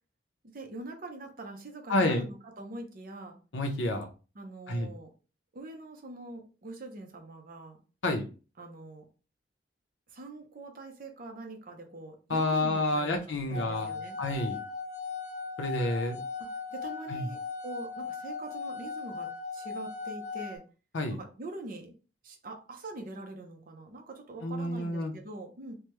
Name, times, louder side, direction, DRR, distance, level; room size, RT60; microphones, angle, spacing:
voice 1, 0.4-3.4 4.3-5.1 5.5-7.8 8.6-9.1 10.1-14.2 16.4-20.6 21.1-21.9 22.2-25.7, right 2 dB, 50° right, 4 dB, 0.7 m, -44 dB
voice 2, 1.9-2.2 3.5-4.1 4.7-4.9 8.0-8.3 12.3-13.9 14.2-14.6 15.6-16.2 17.1-17.3 20.9-21.2 24.4-25.1, left 2 dB, 90° left, 4 dB, 0.8 m, -29 dB
sound 1, 13.5-20.6, left 5 dB, 40° left, 0.7 m, -38 dB
3.4 x 2.2 x 3.0 m, 0.34 s
head